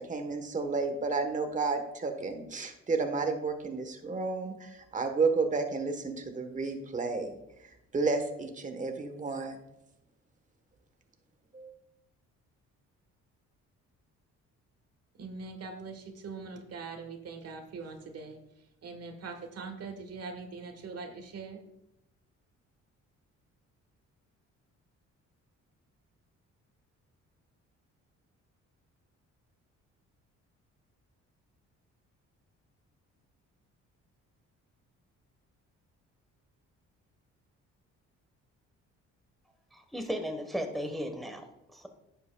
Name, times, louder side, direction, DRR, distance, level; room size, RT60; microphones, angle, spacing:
voice 1, 0.0-7.4 7.9-9.6 11.5-11.7, right 4 dB, 25° right, 1.1 m, -31 dB
voice 2, 15.2-18.4 18.8-21.6, right 4 dB, 55° right, 1.3 m, -42 dB
voice 3, 39.7-41.5 41.7-41.9, equal, ahead, 1.1 m, -35 dB
11.0 x 7.8 x 2.2 m
cardioid pair, 90°, 30 cm